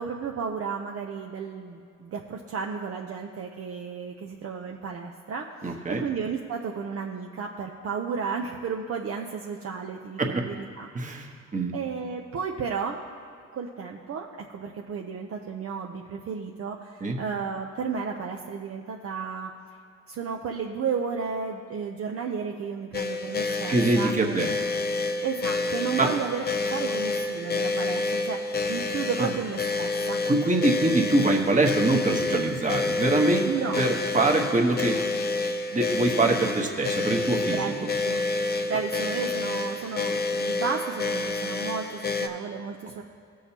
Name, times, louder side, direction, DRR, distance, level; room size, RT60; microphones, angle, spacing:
voice 1, 0.0-11.4 11.7-13.0 13.5-19.5 20.1-24.4 25.2-30.2 33.4-33.8 36.0-36.3 37.5-38.2 38.7-43.0, right 6 dB, 50° right, 1 dB, 0.7 m, -33 dB
voice 2, 5.6-6.0 10.2-10.4 10.9-11.3 11.5-11.7 17.0-17.2 23.7-24.5 26.0-26.1 29.2-29.3 30.2-33.5 33.8-35.0 35.7-37.9 38.5-38.6, right 2 dB, 25° right, 1 dB, 1.2 m, -24 dB
sound 1, 22.9-42.3, left 3 dB, 35° left, 0.6 m, -29 dB
17.5 x 6.4 x 2.9 m, 2.4 s
cardioid pair, 90°, 30 cm